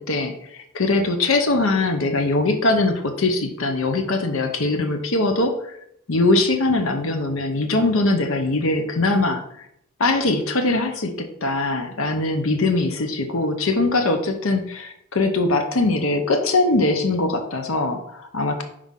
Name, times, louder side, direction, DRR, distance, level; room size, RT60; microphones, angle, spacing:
voice 1, 0.1-5.8 6.1-9.4 10.0-18.6, left 2 dB, 70° left, 6 dB, 0.8 m, -21 dB
5.7 x 4.8 x 3.7 m, 0.74 s
head